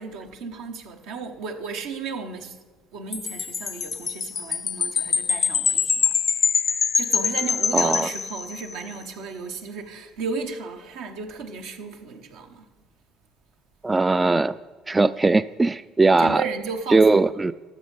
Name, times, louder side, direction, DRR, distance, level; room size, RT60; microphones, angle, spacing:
voice 1, 0.0-2.6 2.9-6.1 7.0-12.7 16.2-17.3, right 4 dB, 75° right, 1.1 m, -34 dB
Wind chime, 3.1-8.8, left 6 dB, 40° left, 0.5 m, -24 dB
voice 2, 7.7-8.1 13.8-14.6 14.9-16.4 16.9-17.5, right 3 dB, 20° right, 0.3 m, -19 dB
13.0 x 6.5 x 5.3 m
supercardioid pair, 75°, 0 cm